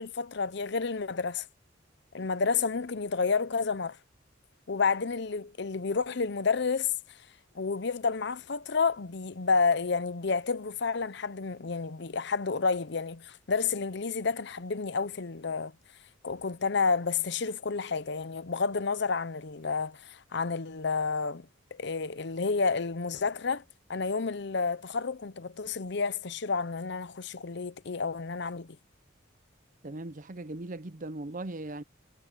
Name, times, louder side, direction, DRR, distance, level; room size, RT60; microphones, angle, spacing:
voice 1, 0.0-1.5 2.1-4.0 4.7-6.9 7.5-15.7 16.2-23.6 23.9-28.8, left 4 dB, 60° left, 0.8 m, -30 dB
voice 2, 29.8-31.8, right 2 dB, 45° right, 0.8 m, -38 dB
head